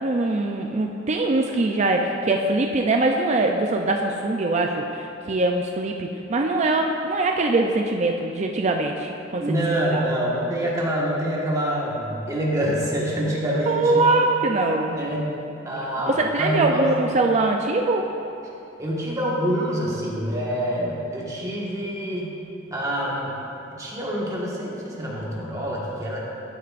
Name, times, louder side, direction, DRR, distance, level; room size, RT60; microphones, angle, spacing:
voice 1, 0.0-9.6 9.9-10.0 13.7-15.0 16.1-18.1, right 2 dB, 35° right, 2 dB, 0.4 m, -22 dB
voice 2, 9.4-14.1 14.9-15.3 15.6-16.8 18.8-22.4 22.7-23.4 23.7-26.2, right 1 dB, 15° right, -5 dB, 1.5 m, -26 dB
12.5 x 9.2 x 2.5 m, 2.8 s
head